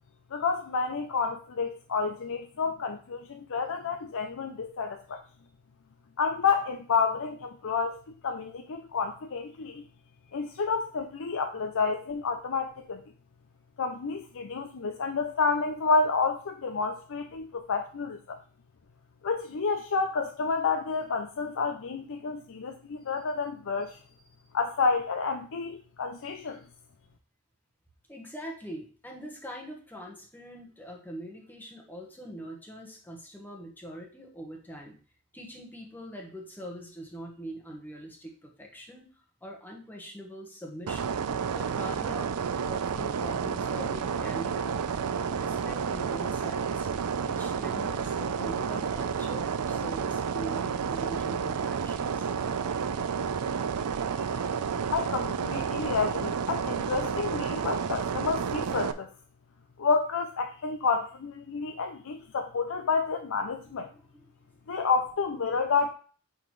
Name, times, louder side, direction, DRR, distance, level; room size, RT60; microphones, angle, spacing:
voice 1, 0.3-5.2 6.2-9.9 10.3-13.0 13.8-18.4 19.2-24.0 24.5-26.6 54.9-59.1 59.8-63.9 64.7-65.9, left 4 dB, 65° left, 5 dB, 0.5 m, -29 dB
voice 2, 28.1-34.9 35.3-39.1 39.4-41.2 41.5-44.8 45.2-46.9 47.2-52.3 63.6-64.3 64.7-64.8, equal, 10° left, 0 dB, 1.2 m, -43 dB
sound 1, 40.9-58.9, right 6 dB, 85° right, 0.5 m, -30 dB
8.6 x 3.9 x 3.2 m, 0.40 s
head